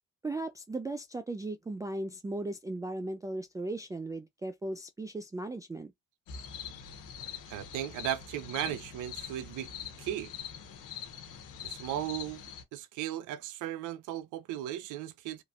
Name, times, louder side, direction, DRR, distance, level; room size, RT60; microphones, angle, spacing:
voice 1, 0.2-5.9, right 2 dB, 10° right, 0.3 m, -37 dB
sound 1, 6.3-12.6, left 8 dB, 70° left, 0.9 m, -44 dB
voice 2, 7.5-9.7 10.0-10.3 11.6-12.4 12.7-15.4, right 12 dB, 70° right, 0.5 m, -36 dB
3.0 x 2.5 x 2.4 m
hypercardioid pair, 60°, 33 cm